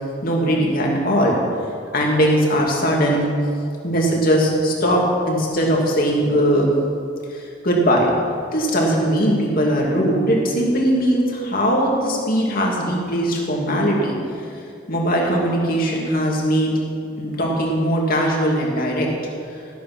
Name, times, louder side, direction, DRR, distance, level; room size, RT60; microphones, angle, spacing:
voice 1, 0.2-1.4 1.9-3.3 3.8-6.7 7.3-8.1 8.5-14.5 14.9-16.7 17.2-19.1, equal, 50° left, -2 dB, 2.4 m, -20 dB
13.5 x 8.5 x 6.1 m, 2.4 s
head